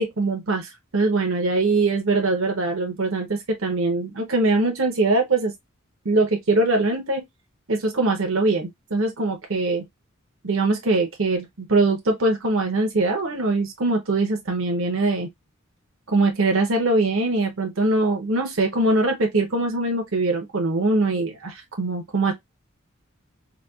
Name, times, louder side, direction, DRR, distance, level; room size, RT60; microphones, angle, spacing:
voice 1, 0.0-5.5 6.0-7.2 7.7-9.8 10.4-15.3 16.1-22.3, right 2 dB, 70° right, 0.8 m, -22 dB
4.0 x 2.3 x 2.3 m
head